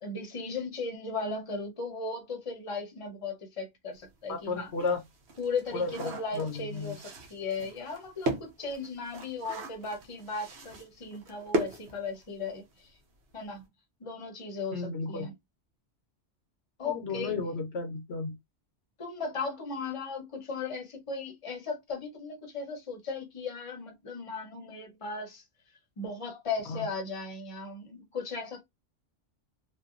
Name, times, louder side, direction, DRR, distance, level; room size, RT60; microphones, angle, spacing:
voice 1, 0.0-4.7 5.4-12.9 13.3-13.6 14.0-15.3 16.8-17.3 19.0-25.4 26.0-28.6, left 4 dB, 30° left, 0.8 m, -37 dB
sound 1, 4.0-4.1 4.6-12.6 12.9-13.0 13.3-13.6, right 1 dB, 65° right, 0.9 m, -37 dB
voice 2, 4.3-5.0 5.7-7.0 14.7-15.3 16.8-18.3 26.7-26.9, left 4 dB, 70° left, 0.9 m, -33 dB
2.7 x 2.3 x 2.5 m
omnidirectional pair, 1.2 m